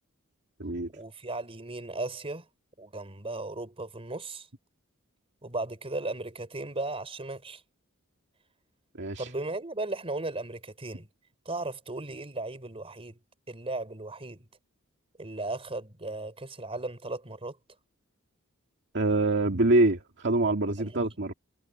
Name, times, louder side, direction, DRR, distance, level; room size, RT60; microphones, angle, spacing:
voice 1, 0.9-2.5 2.8-4.5 5.4-7.6 9.2-11.1 11.4-13.2 13.5-14.5 15.2-17.6 20.7-21.0, right 2 dB, 25° right, 4.4 m, -36 dB
voice 2, 9.0-9.3 18.9-21.3, right 2 dB, 55° right, 2.2 m, -25 dB
head